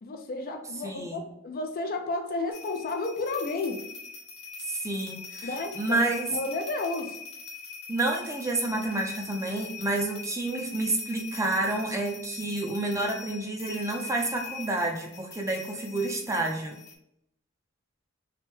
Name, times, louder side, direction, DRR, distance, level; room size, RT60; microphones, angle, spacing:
voice 1, 0.0-3.9 5.4-7.2, left 3 dB, 45° left, 5 dB, 0.4 m, -32 dB
voice 2, 0.8-1.2 4.7-5.5 5.8-6.3 7.9-16.8, right 2 dB, 15° right, 2 dB, 0.4 m, -29 dB
sound 1, 2.5-17.0, left 5 dB, 85° left, 0.7 m, -42 dB
3.2 x 2.1 x 3.1 m, 0.78 s
head